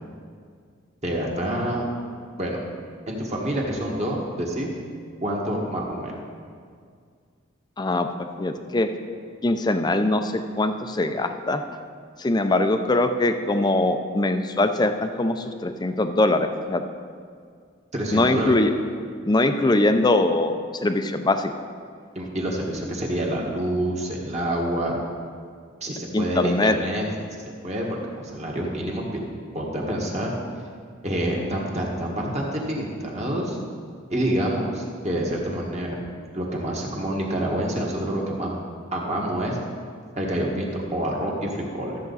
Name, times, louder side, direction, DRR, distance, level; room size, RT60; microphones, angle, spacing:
voice 1, 1.0-1.9 2.4-2.6 3.1-4.7 5.2-6.1 17.9-18.6 22.2-24.9 25.8-27.0 27.3-29.0 29.5-30.3 31.0-33.6 34.1-36.0 36.3-38.6 38.9-39.6 40.2-42.0, right 1 dB, 35° right, -2 dB, 1.6 m, -27 dB
voice 2, 7.8-8.1 8.4-8.9 9.4-11.6 12.2-16.8 18.1-18.7 19.3-20.5 20.8-21.5 26.1-26.8, left 2 dB, 20° left, 8 dB, 0.5 m, -22 dB
13.0 x 7.4 x 4.1 m, 2.1 s
head